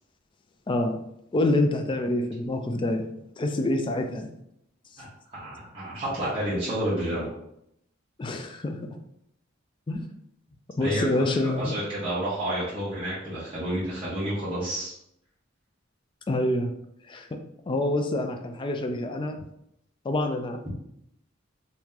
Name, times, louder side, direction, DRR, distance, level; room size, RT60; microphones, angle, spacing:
voice 1, 0.7-1.0 1.3-4.3 8.2-8.8 9.9-10.0 10.8-11.8 16.3-16.7 17.1-17.4 17.7-19.4 20.0-20.6, left 1 dB, 25° left, 5 dB, 0.3 m, -26 dB
voice 2, 5.0-7.3 10.8-14.9, right 1 dB, 30° right, -10 dB, 1.1 m, -30 dB
3.0 x 2.7 x 3.6 m, 0.77 s
head